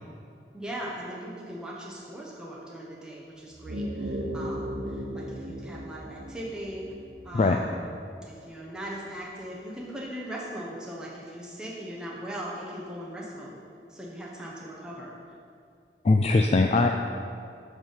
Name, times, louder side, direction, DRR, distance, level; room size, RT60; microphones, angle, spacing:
voice 1, 0.5-6.9 7.2-7.8 8.2-13.6 13.9-15.1, right 1 dB, 5° right, -5 dB, 1.0 m, -39 dB
sound 1, 3.5-8.3, equal, 85° right, 1.1 m, -36 dB
voice 2, 16.0-17.0, left 3 dB, 35° left, 4 dB, 0.3 m, -21 dB
8.0 x 5.3 x 5.6 m, 2.4 s
head